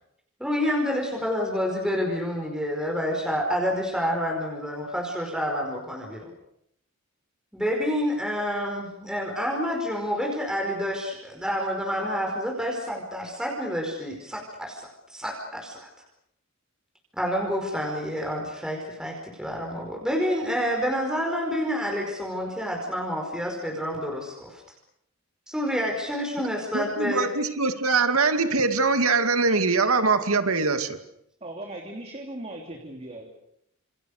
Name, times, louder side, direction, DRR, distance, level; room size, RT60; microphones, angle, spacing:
voice 1, 0.4-6.3 7.5-15.9 17.2-24.6 25.5-27.3, equal, 5° right, 0 dB, 4.9 m, -28 dB
voice 2, 26.7-31.0, right 4 dB, 85° right, 8 dB, 2.4 m, -23 dB
voice 3, 31.4-33.3, right 1 dB, 30° right, 2 dB, 3.1 m, -38 dB
29.0 x 28.0 x 6.7 m, 0.75 s
head